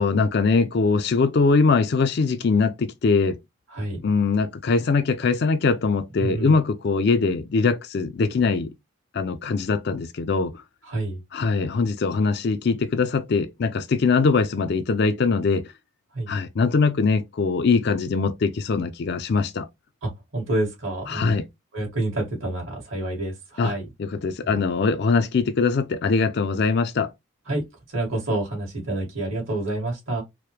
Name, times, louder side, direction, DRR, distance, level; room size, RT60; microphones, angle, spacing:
voice 1, 0.0-3.4 4.0-8.7 9.1-10.6 11.3-15.7 16.3-19.7 21.1-21.5 23.6-27.1, left 4 dB, 50° left, 0.4 m, -22 dB
voice 2, 6.2-6.6 10.9-11.2 16.1-16.3 20.0-21.4 21.7-23.8 24.4-24.6 27.5-27.6 27.9-30.2, right 2 dB, 70° right, 2.3 m, -28 dB
4.6 x 2.1 x 3.2 m
head